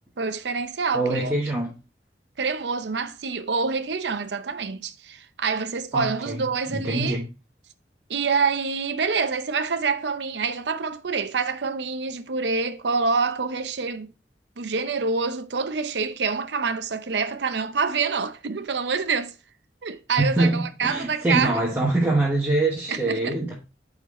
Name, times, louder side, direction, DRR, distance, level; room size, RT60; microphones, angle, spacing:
voice 1, 0.2-1.3 2.4-7.2 8.1-14.1 14.6-19.4 19.8-21.6 22.9-23.3, right 5 dB, 75° right, 0.7 m, -26 dB
voice 2, 0.9-1.8 5.9-6.4 6.7-7.3 20.2-23.5, right 2 dB, 10° right, 1.3 m, -24 dB
9.2 x 4.0 x 3.1 m
head